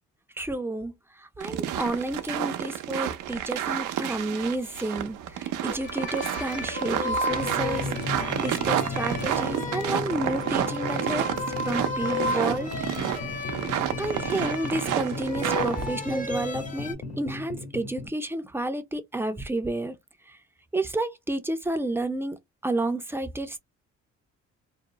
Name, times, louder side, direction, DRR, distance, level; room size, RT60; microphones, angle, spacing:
voice 1, 0.4-7.9 8.4-11.3 11.6-12.9 13.7-20.0 20.3-20.4 20.7-22.4 22.6-23.6, right 2 dB, 10° right, 0.5 m, -31 dB
sound 1, 1.4-15.9, right 11 dB, 90° right, 0.5 m, -30 dB
sound 2, 5.7-16.9, left 3 dB, 25° left, 0.7 m, -34 dB
sound 3, 7.3-18.1, left 3 dB, 55° left, 1.3 m, -36 dB
2.6 x 2.0 x 2.9 m
cardioid pair, 90°, 30 cm